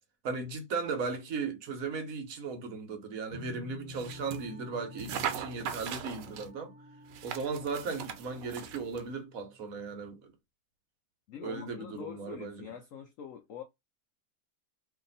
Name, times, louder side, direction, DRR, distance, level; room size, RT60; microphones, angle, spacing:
voice 1, 0.2-6.7 7.2-10.2 11.4-12.7, right 4 dB, 60° right, 1.1 m, -37 dB
sound 1, 3.3-8.9, left 3 dB, 35° right, 1.2 m, -50 dB
Wind instrument woodwind instrument, 3.9-9.3, right 3 dB, 45° left, 1.0 m, -56 dB
sound 2, 3.9-4.5 5.0-6.5 7.1-9.1, right 8 dB, 80° right, 1.2 m, -39 dB
voice 2, 11.3-13.6, left 8 dB, 80° left, 0.7 m, -44 dB
2.8 x 2.6 x 3.9 m
omnidirectional pair, 1.9 m